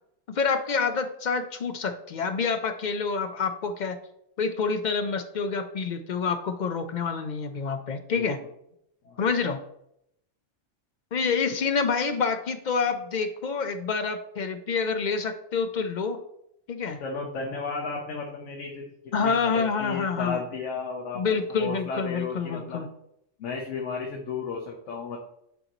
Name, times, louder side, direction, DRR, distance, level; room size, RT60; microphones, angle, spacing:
voice 1, 0.3-4.0 4.4-8.4 9.2-9.6 11.1-16.2 16.7-17.0 19.1-20.4 21.1-22.9, left 5 dB, 60° left, 8 dB, 0.5 m, -27 dB
voice 2, 17.0-22.9 23.4-25.2, left 4 dB, 80° left, 0 dB, 1.2 m, -34 dB
9.1 x 3.8 x 2.9 m, 0.77 s
omnidirectional pair, 1.3 m